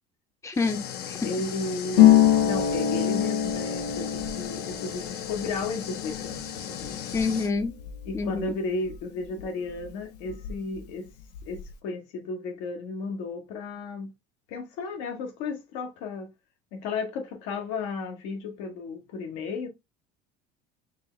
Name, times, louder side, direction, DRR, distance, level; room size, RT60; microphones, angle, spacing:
voice 1, 0.4-1.2 7.1-7.7 8.1-8.5, left 4 dB, 15° left, 0.8 m, -27 dB
sound 1, 0.5-7.5, left 9 dB, 55° left, 0.8 m, -38 dB
voice 2, 1.2-7.0 8.0-11.1 11.4-14.1 14.5-16.3 16.7-19.7, left 3 dB, 70° left, 1.2 m, -34 dB
Harp, 1.9-9.4 9.7-10.8 11.1-11.7, left 11 dB, 90° left, 0.8 m, -25 dB
4.4 x 2.8 x 3.1 m
supercardioid pair, 90°, 20 cm